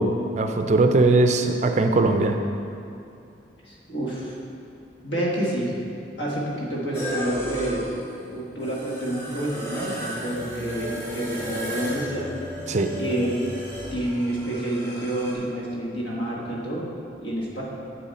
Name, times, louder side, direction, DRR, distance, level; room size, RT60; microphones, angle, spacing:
voice 1, 0.0-2.4 12.7-12.9, right 2 dB, 40° right, 6 dB, 0.4 m, -20 dB
voice 2, 3.7-4.4 5.0-5.7 6.2-7.8 8.3-12.3 13.0-13.4 13.9-16.8 17.2-17.6, right 1 dB, 70° left, -4 dB, 1.7 m, -28 dB
sound 1, 6.9-15.3, equal, 15° left, 1.4 m, -34 dB
7.7 x 7.1 x 4.1 m, 2.6 s
head